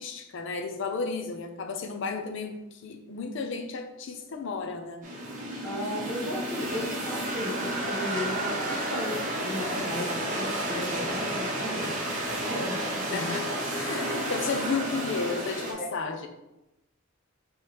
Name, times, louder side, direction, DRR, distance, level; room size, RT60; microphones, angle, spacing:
voice 1, 0.0-5.0 13.1-16.3, left 4 dB, 60° left, 5 dB, 0.5 m, -33 dB
sound 1, 5.0-15.7, right 1 dB, 40° right, 0.9 m, -31 dB
voice 2, 5.6-11.9 12.4-13.3 15.8-15.9, left 1 dB, ahead, -11 dB, 1.1 m, -35 dB
4.7 x 3.1 x 3.0 m, 0.92 s
head